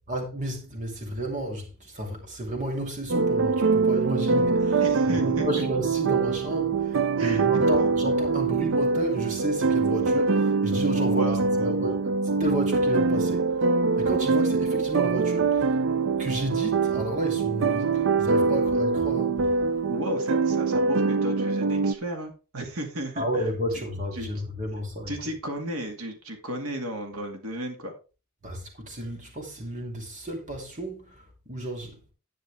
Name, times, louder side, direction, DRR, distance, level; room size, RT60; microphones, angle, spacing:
voice 1, 0.1-4.8 5.1-11.9 12.4-13.6 14.0-15.7 16.2-19.5 23.2-25.1 28.4-32.0, right 1 dB, 35° right, 2.7 m, -32 dB
sound 1, 3.1-21.9, right 4 dB, 55° right, 0.5 m, -24 dB
voice 2, 4.8-5.6 7.2-7.6 11.0-12.0 19.8-23.8 24.1-24.3 25.1-27.9, equal, 80° right, 2.2 m, -34 dB
10.5 x 9.1 x 3.5 m
head